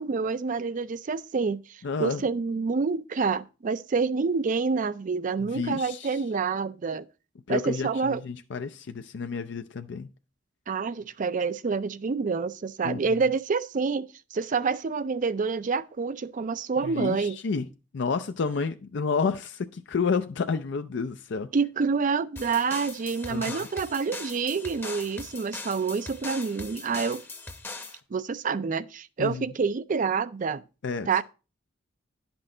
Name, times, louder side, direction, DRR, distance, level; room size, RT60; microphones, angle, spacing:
voice 1, 0.0-7.0 7.5-8.2 10.7-17.4 21.5-27.2 28.1-30.6 31.1-31.2, right 5 dB, 45° right, 0.4 m, -28 dB
voice 2, 1.8-2.2 5.4-6.2 7.5-10.1 12.8-13.2 16.8-17.7 17.9-21.5 23.3-23.7 29.2-29.5 30.8-31.1, left 5 dB, 65° left, 0.5 m, -30 dB
sound 1, 22.4-28.0, left 3 dB, 10° left, 0.8 m, -40 dB
11.0 x 6.1 x 3.8 m
head